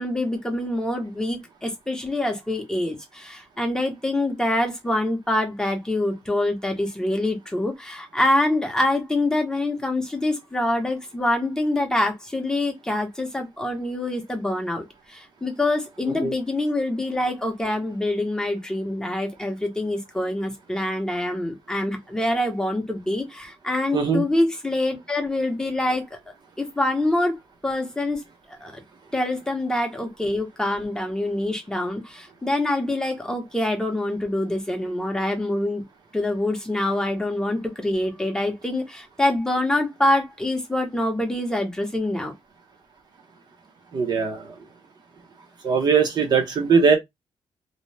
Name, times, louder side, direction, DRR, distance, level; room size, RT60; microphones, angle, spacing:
voice 1, 0.0-26.2 26.6-27.4 27.6-28.2 28.5-28.7 29.1-35.8 36.1-42.3, left 1 dB, 5° left, 0.7 m, -25 dB
voice 2, 23.9-24.2 43.9-44.5 45.6-47.0, right 5 dB, 45° right, 0.7 m, -20 dB
2.7 x 2.1 x 3.1 m
wide cardioid pair, 175°, 10 cm